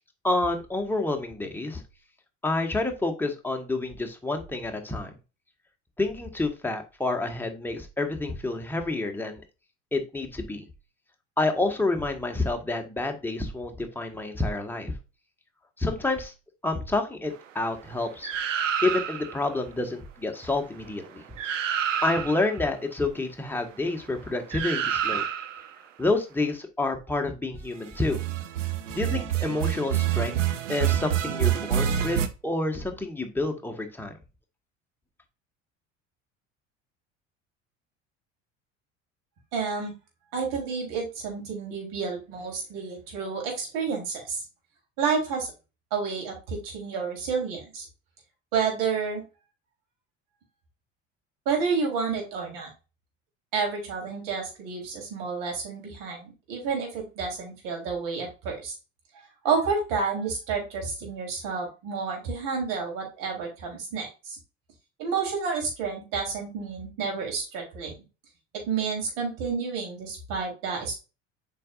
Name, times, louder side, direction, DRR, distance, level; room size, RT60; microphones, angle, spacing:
voice 1, 0.2-1.8 2.4-5.1 6.0-9.4 9.9-10.6 11.4-14.9 15.8-16.3 16.6-18.3 18.8-21.2 22.0-25.2 26.0-28.2 28.9-30.4 30.7-34.2, left 2 dB, 5° left, 3 dB, 1.7 m, -28 dB
sound 1, 18.2-19.4 21.0-21.1 21.4-22.5 24.5-25.7 28.0-32.3, right 10 dB, 75° right, 0.8 m, -27 dB
voice 2, 39.5-39.9 40.3-44.4 45.0-45.5 45.9-47.9 48.5-49.2 51.5-52.7 53.5-58.8 59.4-64.4 65.0-67.9 68.6-71.0, right 5 dB, 55° right, 1 dB, 3.9 m, -30 dB
7.5 x 5.5 x 2.5 m, 0.30 s
figure-of-eight pair, 65°, 38 cm